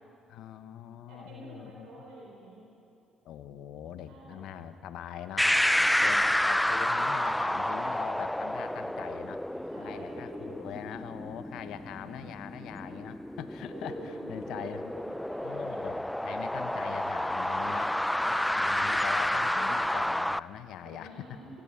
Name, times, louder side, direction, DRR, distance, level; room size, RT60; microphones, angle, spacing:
voice 1, 0.3-1.9 3.2-5.5 6.0-9.4 9.8-14.8 15.4-18.0 18.5-21.4, left 10 dB, 75° left, 11 dB, 1.0 m, -42 dB
voice 2, 1.1-2.7 4.1-4.5 5.6-6.1 9.5-10.6 11.7-12.0 13.7-15.8 18.1-18.7 20.8-21.5, right 2 dB, 80° right, -3 dB, 3.9 m, -48 dB
sound 1, 5.4-20.4, left 1 dB, 5° left, 0.4 m, -30 dB
18.0 x 17.0 x 8.6 m, 2.7 s
supercardioid pair, 65°, 0 cm